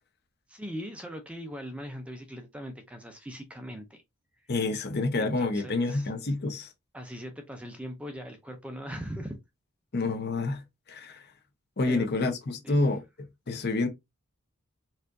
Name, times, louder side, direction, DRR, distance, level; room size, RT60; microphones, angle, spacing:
voice 1, 0.5-4.0 5.2-6.1 6.9-9.4 11.9-12.1 12.6-12.9, equal, 5° right, 0.4 m, -40 dB
voice 2, 4.5-6.7 9.9-10.6 10.9-11.2 11.8-13.9, left 3 dB, 50° left, 0.7 m, -28 dB
4.3 x 2.4 x 2.5 m
head